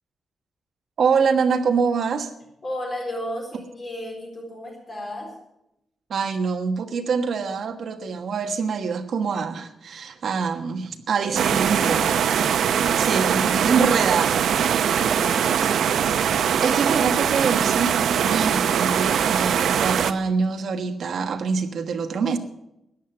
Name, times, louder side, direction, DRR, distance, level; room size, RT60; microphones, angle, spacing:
voice 1, 1.0-2.3 6.1-12.2 13.0-15.2 16.6-22.4, right 5 dB, 55° right, 1.3 m, -25 dB
voice 2, 2.6-5.3 11.5-12.2 13.1-13.2 14.9-15.8, left 1 dB, 25° left, 4.0 m, -34 dB
sound 1, 11.3-20.1, right 8 dB, 80° right, 0.7 m, -21 dB
14.0 x 9.5 x 7.0 m
wide cardioid pair, 170°, 0 cm